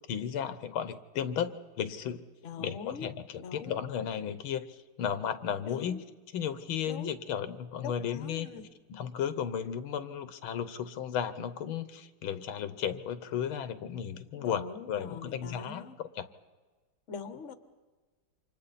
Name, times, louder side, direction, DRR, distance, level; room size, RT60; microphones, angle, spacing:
voice 1, 0.1-2.2 2.6-6.0 6.3-8.5 8.9-15.8 16.2-16.3, left 8 dB, 85° left, 12 dB, 1.8 m, -34 dB
voice 2, 2.4-3.1 3.4-3.8 5.6-6.0 6.8-7.1 7.5-8.6 14.3-16.0 17.1-17.5, left 6 dB, 45° left, 10 dB, 1.2 m, -43 dB
29.0 x 26.0 x 4.2 m, 1.3 s
omnidirectional pair, 2.2 m